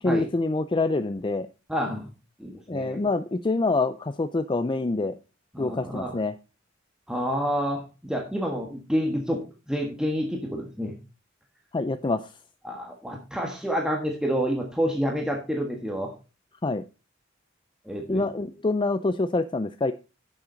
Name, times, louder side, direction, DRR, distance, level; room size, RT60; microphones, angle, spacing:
voice 1, 0.0-1.5 2.7-5.1 5.6-6.3 11.7-12.3 16.6-16.8 18.1-19.9, left 3 dB, 25° left, 10 dB, 0.5 m, -26 dB
voice 2, 1.7-2.1 2.4-3.0 5.5-6.1 7.1-9.4 9.7-10.9 12.6-16.1 17.9-18.2, equal, 5° right, 0 dB, 1.6 m, -28 dB
10.0 x 7.4 x 3.9 m, 0.31 s
head